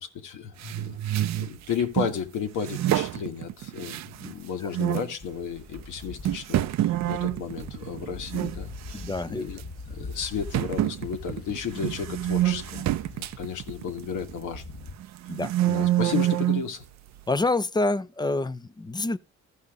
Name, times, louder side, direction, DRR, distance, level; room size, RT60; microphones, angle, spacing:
voice 1, 0.0-9.6 9.9-14.7 15.7-16.8, left 7 dB, 85° left, 1.5 m, -33 dB
sound 1, 0.6-2.2 2.6-4.4 4.7-5.1 5.7-5.8 6.2-8.6 8.9-9.2 9.6-9.7 10.5-14.5 15.0-16.7, right 13 dB, 65° right, 0.5 m, -27 dB
sound 2, 5.2-14.9, left 3 dB, 50° left, 1.4 m, -43 dB
voice 2, 8.9-9.4 15.3-15.5 17.3-19.2, left 2 dB, 15° left, 0.5 m, -27 dB
13.5 x 5.6 x 3.6 m
cardioid pair, 90°, 30 cm